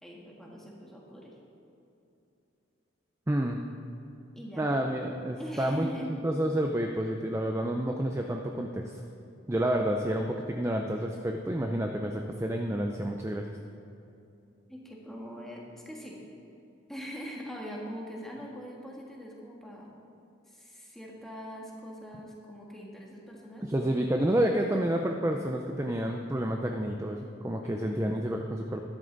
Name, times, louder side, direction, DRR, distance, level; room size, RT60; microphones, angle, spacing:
voice 1, 0.0-1.4 4.3-4.8 5.3-6.1 14.7-16.2 16.9-19.9 20.5-23.7 27.6-28.0, equal, ahead, -3 dB, 1.6 m, -42 dB
voice 2, 3.3-3.6 4.6-5.9 6.2-9.0 9.5-13.6 23.6-28.8, right 1 dB, 15° right, 3 dB, 0.4 m, -29 dB
13.0 x 11.0 x 3.9 m, 2.8 s
head